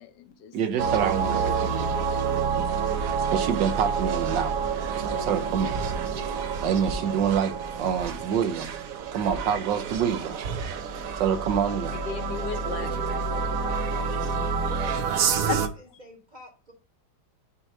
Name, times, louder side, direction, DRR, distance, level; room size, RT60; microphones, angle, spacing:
voice 1, 0.0-0.5 2.5-2.6 5.0-5.6 11.9-14.8 15.1-15.2 15.5-15.7, left 7 dB, 75° left, 1.3 m, -38 dB
voice 2, 0.5-1.9 2.3-2.6 3.3-4.5 5.0-5.7 6.6-8.8 9.1-10.4 11.2-12.0, right 8 dB, 80° right, 1.5 m, -27 dB
sound 1, 0.8-15.7, right 6 dB, 65° right, 0.9 m, -28 dB
voice 3, 14.7-15.5 15.8-16.7, right 1 dB, 30° right, 1.2 m, -45 dB
6.8 x 2.9 x 4.9 m
omnidirectional pair, 2.0 m